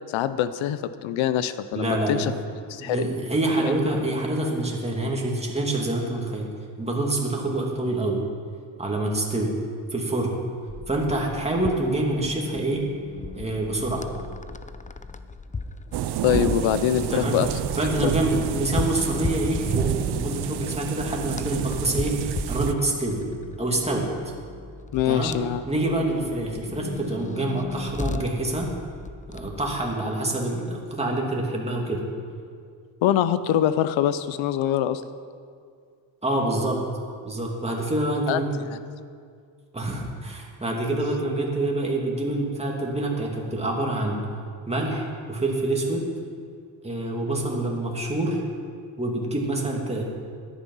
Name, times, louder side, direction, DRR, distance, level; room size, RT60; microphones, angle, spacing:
voice 1, 0.1-2.3 2.7-3.0 3.6-3.7 16.2-17.5 17.8-18.1 24.9-25.6 33.0-35.0 38.3-38.8, left 11 dB, 80° left, 13 dB, 0.8 m, -24 dB
voice 2, 1.7-2.4 2.8-6.5 6.8-8.2 8.8-9.5 9.9-10.4 10.9-12.9 13.4-14.0 17.1-17.4 17.8-23.2 23.6-24.1 25.0-25.4 25.7-28.7 29.3-32.0 36.2-36.8 37.2-38.5 39.7-44.2 44.7-46.0 46.8-48.4 49.0-50.0, right 2 dB, 15° right, -1 dB, 2.7 m, -26 dB
sound 1, 10.7-30.0, left 4 dB, 15° left, 0.5 m, -37 dB
sound 2, 15.9-22.7, right 10 dB, 60° right, 0.7 m, -29 dB
14.0 x 10.5 x 5.7 m, 2.2 s
cardioid pair, 95°, 45 cm